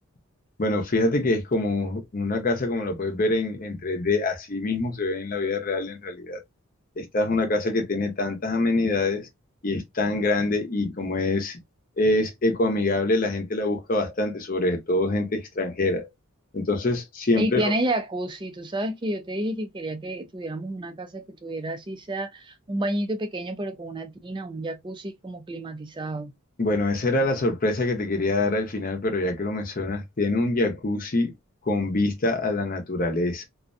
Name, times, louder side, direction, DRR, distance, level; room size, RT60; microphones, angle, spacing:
voice 1, 0.6-6.4 7.0-9.3 9.6-11.6 12.0-16.1 16.5-17.7 26.6-31.3 31.7-33.5, left 2 dB, 40° left, 0.6 m, -25 dB
voice 2, 17.4-26.3, right 1 dB, 20° right, 0.3 m, -30 dB
2.4 x 2.1 x 2.4 m
head